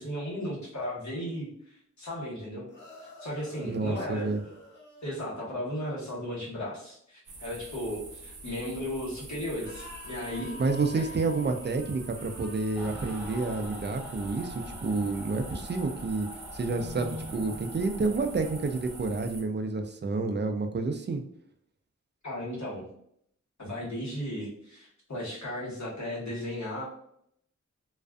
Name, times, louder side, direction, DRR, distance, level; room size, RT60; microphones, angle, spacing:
voice 1, 0.0-2.7 3.0-4.4 5.0-10.5 10.9-11.0 22.2-22.9 23.6-26.8, equal, 70° left, -6 dB, 1.2 m, -35 dB
sound 1, 2.7-5.4 9.6-13.7, left 2 dB, 40° left, 0.8 m, -48 dB
voice 2, 3.6-4.4 10.6-16.3 16.5-21.2, right 3 dB, 35° right, 6 dB, 0.4 m, -29 dB
sound 2, 7.3-19.4, right 2 dB, 90° right, 0.5 m, -46 dB
Mechanical fan, 12.8-19.2, left 1 dB, 5° right, 0.9 m, -43 dB
2.4 x 2.4 x 2.3 m, 0.69 s
cardioid pair, 40°, 30 cm